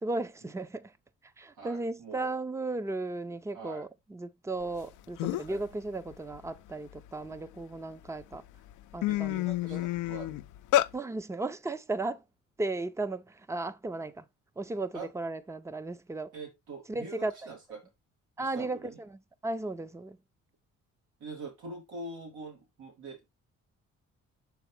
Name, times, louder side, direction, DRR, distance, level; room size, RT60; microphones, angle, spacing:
voice 1, 0.0-0.9 1.4-8.4 8.9-9.8 10.9-12.2 12.6-14.2 14.6-16.3 16.9-17.3 18.4-20.2, right 2 dB, 10° right, 0.6 m, -35 dB
voice 2, 1.6-2.4 3.5-3.8 5.5-5.6 9.1-10.4 14.9-15.1 16.3-17.8 18.4-19.0 21.2-23.2, right 3 dB, 90° right, 2.9 m, -44 dB
sound 1, 4.8-4.9 5.2-5.6 6.1-7.6 8.2-8.4 8.7-10.9, left 15 dB, 85° left, 0.5 m, -29 dB
6.9 x 4.8 x 3.3 m
cardioid pair, 90°, 30 cm